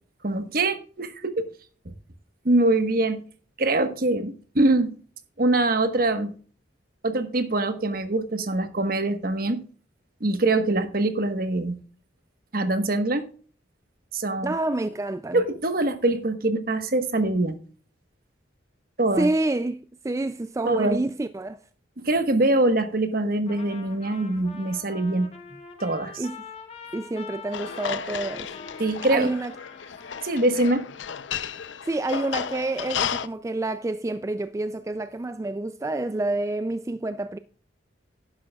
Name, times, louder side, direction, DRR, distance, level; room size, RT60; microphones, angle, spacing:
voice 1, 0.2-1.5 2.4-3.2 3.6-5.0 5.4-6.3 7.0-9.6 10.2-11.8 12.5-13.3 14.1-14.5 15.3-17.6 19.0-19.3 20.6-21.0 22.0-25.3 25.8-26.2 28.8-29.3 30.2-30.9, right 2 dB, 50° right, 1.3 m, -23 dB
voice 2, 14.4-15.4 19.2-21.6 26.2-26.4 26.9-28.5 29.1-29.5 31.8-37.4, right 2 dB, 15° right, 0.3 m, -28 dB
Trumpet, 23.5-30.8, left 5 dB, 35° left, 1.8 m, -44 dB
sound 1, 27.5-33.3, left 7 dB, 85° left, 0.6 m, -33 dB
11.5 x 10.5 x 2.3 m
head